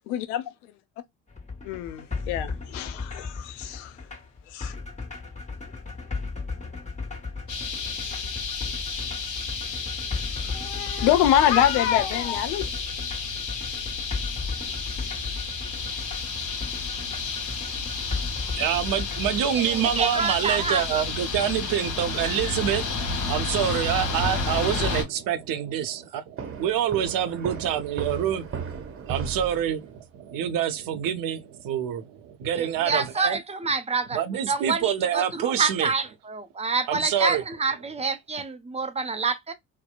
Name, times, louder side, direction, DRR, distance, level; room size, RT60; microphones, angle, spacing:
voice 1, 0.1-0.4 1.6-3.9 4.5-4.7 10.4-12.7, left 11 dB, 70° left, 0.6 m, -25 dB
sound 1, 1.3-19.4, left 4 dB, 15° left, 1.2 m, -36 dB
sound 2, 7.5-25.0, left 4 dB, 50° left, 1.0 m, -31 dB
voice 2, 18.6-33.4 34.1-35.9 36.9-37.4, right 10 dB, 55° right, 0.6 m, -27 dB
voice 3, 19.5-21.0 32.5-39.5, right 4 dB, 15° right, 0.5 m, -27 dB
sound 3, 26.4-30.1, right 6 dB, 30° right, 0.9 m, -35 dB
2.7 x 2.0 x 2.3 m
hypercardioid pair, 50°, 40 cm